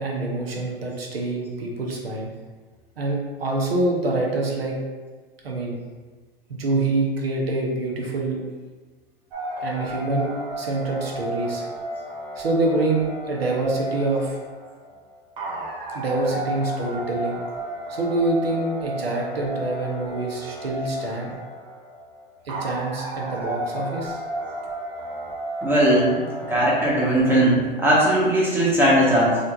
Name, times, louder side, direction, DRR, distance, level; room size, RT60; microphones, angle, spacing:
voice 1, 0.0-2.3 3.0-4.8 5.4-5.8 6.5-8.4 9.6-11.7 12.3-14.4 15.9-17.4 17.9-21.3 22.4-24.2, right 2 dB, 85° right, -1 dB, 0.9 m, -26 dB
sound 1, 9.3-27.4, right 1 dB, 65° right, 1.3 m, -33 dB
voice 2, 25.6-26.2 26.5-29.4, right 1 dB, 5° right, -7 dB, 1.3 m, -19 dB
4.3 x 3.1 x 2.5 m, 1.4 s
hypercardioid pair, 110°, 29 cm